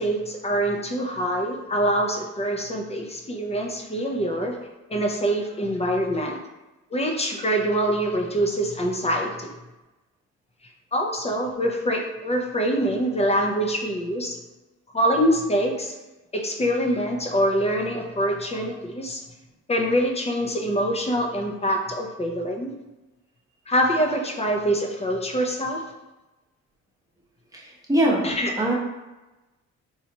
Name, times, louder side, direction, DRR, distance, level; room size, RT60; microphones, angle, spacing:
voice 1, 0.0-4.6 4.9-6.4 6.9-9.5 10.9-14.4 14.9-15.9 16.3-19.2 19.7-22.7 23.7-25.8 28.2-28.5, equal, 20° left, 2 dB, 0.6 m, -24 dB
voice 2, 27.5-28.3 28.6-28.7, right 1 dB, 10° right, -5 dB, 0.9 m, -22 dB
4.0 x 2.3 x 2.9 m, 1.1 s
cardioid pair, 90°, 30 cm